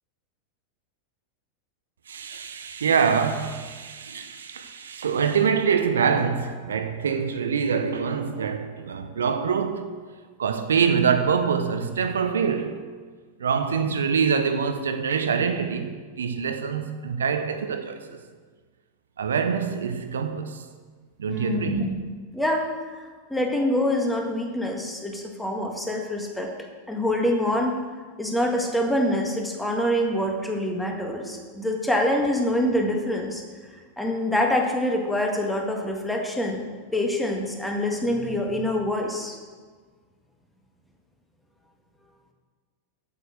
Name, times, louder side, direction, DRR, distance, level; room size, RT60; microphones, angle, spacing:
voice 1, 2.1-9.9 10.4-12.7 13.4-18.2 19.2-20.6 21.2-21.8, right 6 dB, 65° right, 0.8 m, -25 dB
voice 2, 21.3-22.0 22.3-22.6 23.3-26.5 26.9-27.7 28.2-33.4 34.0-36.6 36.9-39.4, left 1 dB, 5° left, 1.8 m, -25 dB
8.6 x 8.6 x 6.7 m
figure-of-eight pair, 90°, 0 cm